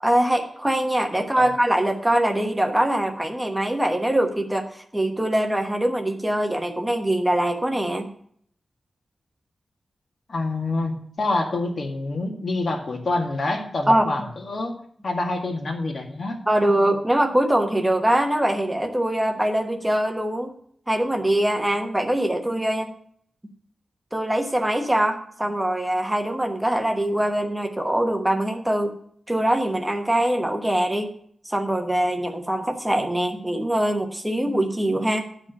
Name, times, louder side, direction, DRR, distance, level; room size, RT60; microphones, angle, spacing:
voice 1, 0.0-8.1 13.9-14.1 16.5-20.5 20.9-22.9 24.1-29.0 29.3-31.1 31.4-35.3, right 1 dB, 10° right, 4 dB, 1.1 m, -23 dB
voice 2, 10.3-14.8 15.0-16.4, left 2 dB, 50° left, 3 dB, 1.8 m, -27 dB
11.5 x 5.0 x 7.0 m, 0.63 s
wide cardioid pair, 150°, 0 cm